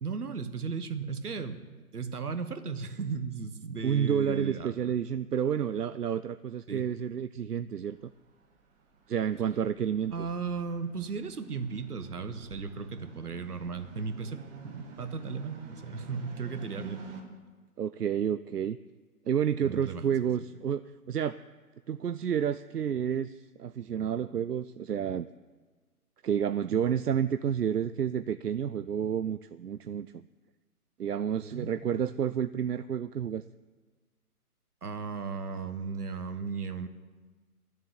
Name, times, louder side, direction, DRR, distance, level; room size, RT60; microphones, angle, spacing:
voice 1, 0.0-1.6 1.9-4.9 6.7-6.8 10.1-17.0 19.6-20.0 31.4-31.7 34.8-36.9, right 5 dB, 75° right, 10 dB, 1.5 m, -36 dB
voice 2, 3.8-8.0 9.1-10.1 17.8-18.8 19.3-20.8 21.1-21.4 21.9-25.3 26.2-30.3 31.0-33.4, right 8 dB, 90° right, 13 dB, 0.6 m, -30 dB
sound 1, 7.9-17.2, right 4 dB, 15° right, 1.4 m, -49 dB
12.5 x 7.4 x 9.8 m, 1.4 s
figure-of-eight pair, 140°, 46 cm